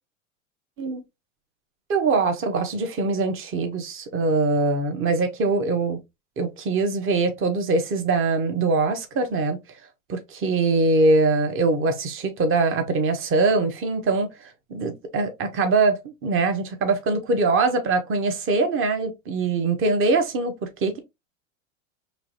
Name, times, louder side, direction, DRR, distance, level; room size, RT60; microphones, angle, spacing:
voice 1, 1.9-6.0 6.4-9.6 10.1-21.0, right 3 dB, 30° right, 1.2 m, -23 dB
4.5 x 3.2 x 2.8 m
hypercardioid pair, 95°, 39 cm